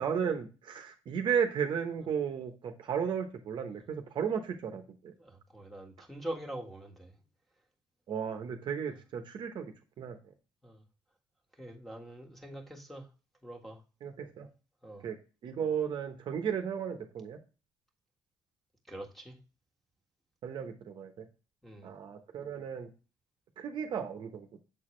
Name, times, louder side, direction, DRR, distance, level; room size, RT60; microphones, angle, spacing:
voice 1, 0.0-5.1 8.1-9.7 10.0-10.2 14.0-14.5 15.0-15.2 15.4-17.4 20.4-21.2 21.8-22.9 23.6-24.6, right 7 dB, 60° right, 1.0 m, -34 dB
voice 2, 5.2-7.1 8.9-9.0 10.6-10.8 11.6-13.1 13.4-13.8 14.8-15.0 18.9-19.4 21.6-21.9, right 1 dB, ahead, 1.6 m, -44 dB
7.2 x 4.1 x 3.2 m
cardioid pair, 95°, 9 cm